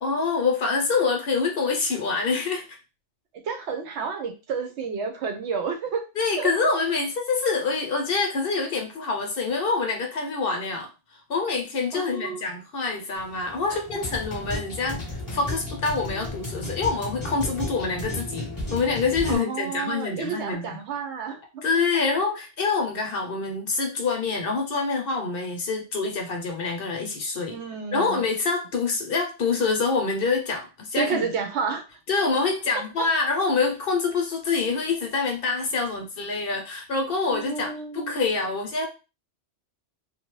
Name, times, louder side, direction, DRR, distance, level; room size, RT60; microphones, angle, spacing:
voice 1, 0.0-2.8 6.2-10.9 11.3-20.8 21.6-27.6 27.9-31.3 32.1-38.9, left 4 dB, 60° left, 2 dB, 0.8 m, -26 dB
voice 2, 3.4-6.1 6.4-6.5 11.9-12.4 13.7-13.8 19.3-21.6 27.5-28.3 31.0-31.8 32.7-33.1 37.3-38.1, right 5 dB, 70° right, 5 dB, 0.9 m, -30 dB
sound 1, 13.2-19.3, left 1 dB, 20° left, 0.8 m, -33 dB
2.6 x 2.2 x 3.0 m, 0.29 s
omnidirectional pair, 1.2 m